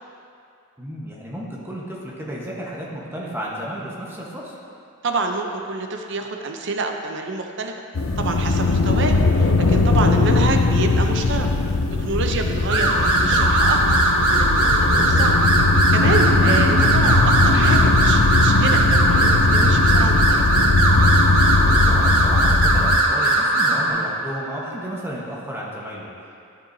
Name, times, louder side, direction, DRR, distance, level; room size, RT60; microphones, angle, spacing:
voice 1, 0.8-4.6 10.1-10.3 21.6-26.4, equal, 10° right, -4 dB, 1.1 m, -33 dB
voice 2, 5.0-7.8 8.2-11.5 12.0-14.0 14.3-15.4 15.7-20.5, right 3 dB, 55° right, 4 dB, 0.6 m, -27 dB
sound 1, 7.9-23.0, left 3 dB, 75° left, 0.6 m, -19 dB
sound 2, 12.7-23.9, right 2 dB, 80° right, 1.3 m, -19 dB
11.5 x 6.7 x 2.7 m, 2.5 s
head